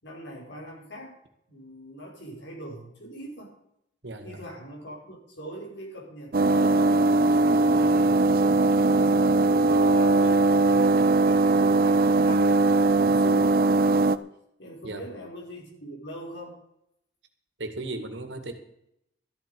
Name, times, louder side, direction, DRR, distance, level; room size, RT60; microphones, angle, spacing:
voice 1, 0.0-1.2 1.5-3.6 4.2-8.2 8.7-14.2 14.6-16.6, right 1 dB, 75° left, -1 dB, 5.0 m, -42 dB
voice 2, 4.0-4.4 14.8-15.1 17.6-18.5, right 2 dB, 80° right, 7 dB, 2.1 m, -36 dB
sound 1, 6.3-14.2, right 2 dB, 50° right, 0.5 m, -20 dB
13.5 x 11.0 x 5.4 m, 0.77 s
head